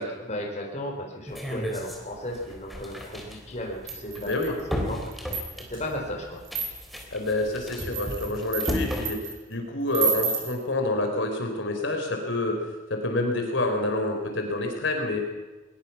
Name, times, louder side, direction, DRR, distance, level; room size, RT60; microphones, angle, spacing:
voice 1, 0.0-4.5 4.9-6.4, left 1 dB, 35° left, 0 dB, 4.4 m, -35 dB
sound 1, 1.3-9.1, equal, ahead, 3.5 m, -35 dB
sound 2, 3.9-4.6 5.1-5.8 6.4-7.0 7.6-9.3 9.9-10.5, right 5 dB, 80° right, 5.6 m, -30 dB
voice 2, 4.1-4.5 7.1-9.2 9.5-12.6 12.9-15.2, left 2 dB, 70° left, 3 dB, 4.3 m, -27 dB
21.5 x 21.0 x 6.0 m, 1.2 s
head